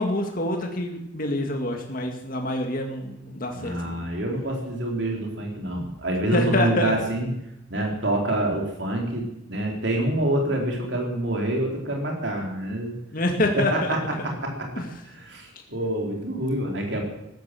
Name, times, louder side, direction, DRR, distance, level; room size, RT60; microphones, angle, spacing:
voice 1, 0.0-4.0 6.3-6.9 13.1-13.9 14.8-14.9, left 1 dB, 45° left, 3 dB, 2.0 m, -26 dB
voice 2, 3.6-7.3 7.7-12.9 13.6-14.0 14.2-14.7 15.1-17.0, right 1 dB, 65° right, 1 dB, 4.0 m, -26 dB
15.0 x 12.5 x 7.7 m, 0.85 s
head